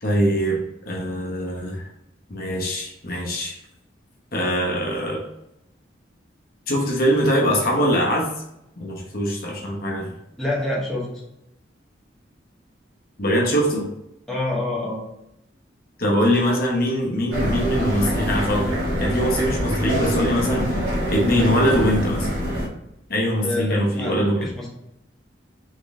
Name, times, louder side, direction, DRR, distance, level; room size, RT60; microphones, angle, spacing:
voice 1, 0.0-1.8 2.3-3.6 4.3-5.2 6.7-8.3 8.8-10.1 13.2-13.9 16.0-20.8 21.1-22.3 23.1-24.5, equal, 50° left, -2 dB, 1.0 m, -22 dB
voice 2, 10.4-11.2 14.3-15.0 23.4-24.7, left 1 dB, 5° left, -6 dB, 1.1 m, -27 dB
sound 1, 17.3-22.7, equal, 50° right, 1.3 m, -24 dB
3.8 x 3.7 x 3.7 m, 0.83 s
head